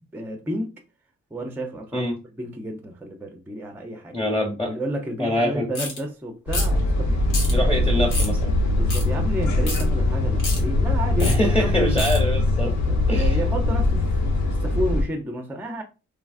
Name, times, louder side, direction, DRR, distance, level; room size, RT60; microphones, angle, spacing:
voice 1, 0.1-0.8 1.3-4.1 4.6-7.3 8.7-12.0 12.8-15.8, right 1 dB, 5° right, 0.4 m, -31 dB
voice 2, 4.1-4.8 5.2-5.7 7.5-8.6 11.2-12.7 13.1-13.4, left 1 dB, 20° left, 1.1 m, -24 dB
sound 1, 5.7-6.0 6.5-6.8 7.3-7.5 8.1-8.3 8.9-9.0 9.7-9.8 10.4-10.6 11.2-11.4 12.0-12.2, left 3 dB, 90° left, 1.1 m, -29 dB
sound 2, 6.5-15.0, left 2 dB, 65° left, 0.8 m, -22 dB
3.2 x 2.2 x 2.4 m
cardioid pair, 90°, 30 cm